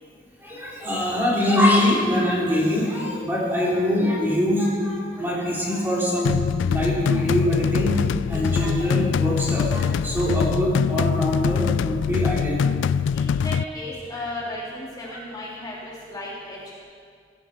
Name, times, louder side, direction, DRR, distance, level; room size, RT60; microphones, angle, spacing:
voice 1, 0.4-6.4 6.6-12.6 15.1-15.2, left 1 dB, 10° right, -6 dB, 3.9 m, -23 dB
sound 1, 6.2-13.6, left 7 dB, 90° left, 0.3 m, -23 dB
voice 2, 13.1-16.8, left 1 dB, 20° left, -6 dB, 3.2 m, -35 dB
17.5 x 17.0 x 4.6 m, 2.1 s
head